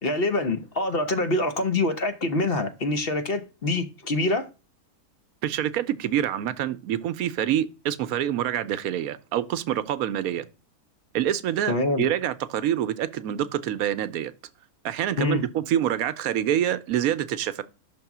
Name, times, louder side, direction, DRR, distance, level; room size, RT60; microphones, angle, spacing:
voice 1, 0.0-4.5 11.7-12.1 15.2-15.4, left 2 dB, 50° left, 0.8 m, -25 dB
voice 2, 5.4-10.5 11.1-14.3 14.8-17.6, right 11 dB, 75° right, 1.0 m, -26 dB
6.1 x 3.5 x 5.8 m
omnidirectional pair, 1.5 m